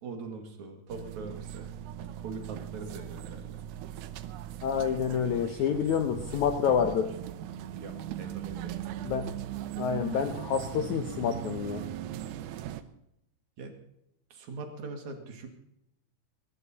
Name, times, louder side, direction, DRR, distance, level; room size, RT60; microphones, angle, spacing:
voice 1, 0.0-1.7 2.0-3.6 7.7-8.8 13.6-13.8 14.3-15.5, right 4 dB, 55° right, 4 dB, 2.7 m, -42 dB
sound 1, 0.9-12.8, right 11 dB, 85° right, 1.7 m, -39 dB
voice 2, 4.6-7.1 9.0-9.3 9.8-11.8, left 7 dB, 85° left, 7 dB, 1.6 m, -28 dB
21.5 x 10.5 x 4.1 m, 0.79 s
omnidirectional pair, 4.5 m